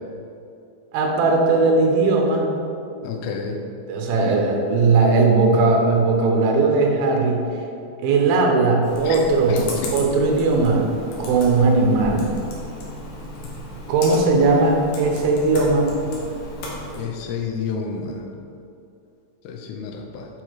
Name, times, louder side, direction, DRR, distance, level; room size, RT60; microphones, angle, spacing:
voice 1, 0.9-2.5 3.9-7.4 8.0-10.9 11.2-12.3 13.9-16.0, right 3 dB, 75° right, 0 dB, 2.5 m, -18 dB
voice 2, 3.0-3.6 9.0-9.2 9.5-9.9 17.0-18.2 19.5-20.3, left 5 dB, 85° left, 2 dB, 2.8 m, -30 dB
Computer keyboard, 8.8-17.0, left 1 dB, 65° left, 2.2 m, -34 dB
7.2 x 4.7 x 4.5 m, 2.6 s
omnidirectional pair, 4.8 m